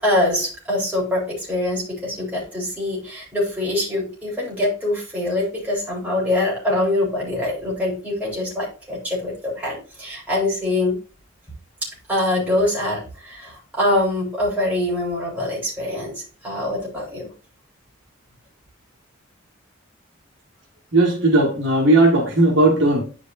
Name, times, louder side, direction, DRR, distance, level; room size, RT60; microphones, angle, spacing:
voice 1, 0.0-11.0 11.8-17.3, left 1 dB, 5° right, 3.6 m, -24 dB
voice 2, 20.9-23.0, right 2 dB, 60° right, 1.8 m, -16 dB
10.0 x 5.1 x 2.6 m
head